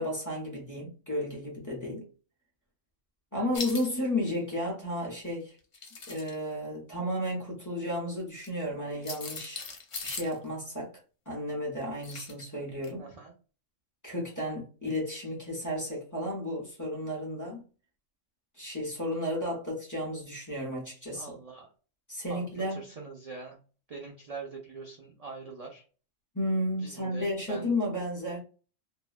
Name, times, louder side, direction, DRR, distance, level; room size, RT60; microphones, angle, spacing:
voice 1, 0.0-2.1 3.3-5.6 6.1-9.7 10.0-10.9 11.3-13.1 14.0-17.6 18.5-21.3 22.1-22.8 26.3-28.4, left 1 dB, 20° left, 0.7 m, -33 dB
voice 2, 3.3-3.8 13.0-13.3 21.1-21.7 22.3-22.4 22.7-23.6 23.9-25.8 26.8-27.7, right 4 dB, 65° right, 0.3 m, -43 dB
sound 1, 3.5-3.9 5.6-6.3 8.4-8.5 9.0-10.4 12.0-12.4 12.8-12.9, left 4 dB, 55° left, 0.3 m, -39 dB
2.6 x 2.1 x 2.3 m
omnidirectional pair, 1.3 m